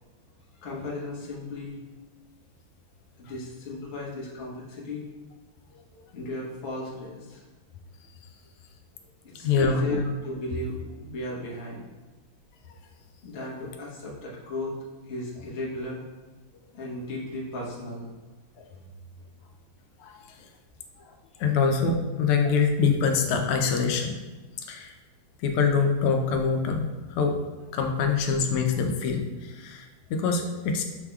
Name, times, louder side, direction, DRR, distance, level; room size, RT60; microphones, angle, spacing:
voice 1, 0.6-1.8 3.2-5.1 6.1-7.4 9.3-11.9 13.2-14.7 15.0-16.0 16.7-18.1 20.4-20.5, left 2 dB, 45° left, -5 dB, 1.0 m, -35 dB
voice 2, 9.4-10.0 18.6-18.7 20.0-20.2 21.1-24.2 24.6-24.9 25.4-27.4 27.7-30.8, left 5 dB, 90° left, 4 dB, 1.5 m, -25 dB
6.4 x 3.4 x 2.2 m, 1.3 s
omnidirectional pair, 2.4 m